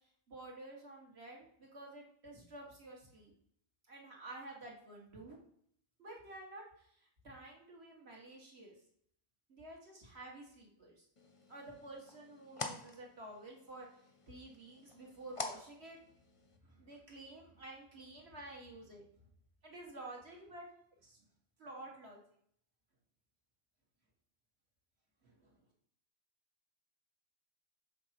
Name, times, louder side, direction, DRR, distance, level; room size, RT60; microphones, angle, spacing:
voice 1, 0.3-3.3 3.9-5.4 6.0-8.8 9.5-11.0 11.5-13.9 14.3-16.0 16.6-19.0 19.6-20.7 21.0-21.2 21.6-22.2 25.2-25.6, right 2 dB, 55° right, -1 dB, 2.2 m, -51 dB
sound 1, 11.2-16.6, left 3 dB, 30° left, 0.7 m, -48 dB
6.5 x 4.4 x 6.0 m, 0.66 s
omnidirectional pair, 1.3 m